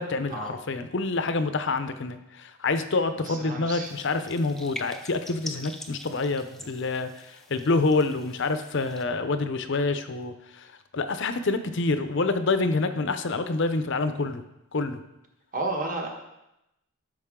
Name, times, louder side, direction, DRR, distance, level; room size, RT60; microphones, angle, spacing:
voice 1, 0.0-10.7 10.9-14.4 14.7-15.0, left 3 dB, 55° left, 9 dB, 0.6 m, -27 dB
voice 2, 3.2-3.9 15.5-16.1, right 2 dB, 35° right, 1 dB, 1.4 m, -31 dB
sound 1, 3.8-9.0, left 1 dB, ahead, 0.5 m, -44 dB
12.5 x 6.2 x 3.7 m, 0.90 s
head